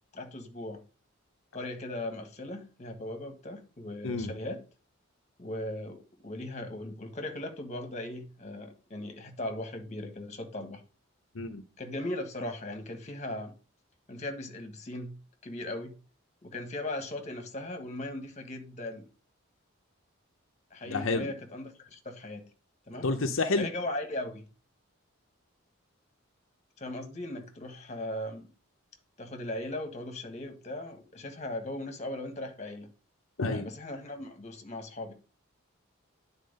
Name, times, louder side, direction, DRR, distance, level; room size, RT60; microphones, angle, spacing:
voice 1, 0.1-0.8 1.5-4.6 5.4-10.8 11.8-13.5 14.1-15.1 15.4-15.9 16.4-19.1 20.7-22.5 22.9-23.1 23.6-24.4 26.8-28.5 29.2-32.9 33.5-35.1, left 1 dB, 35° left, 1.5 m, -38 dB
voice 2, 20.9-21.3 23.0-23.7 33.4-33.7, left 3 dB, 70° left, 0.8 m, -29 dB
9.5 x 4.4 x 5.3 m
head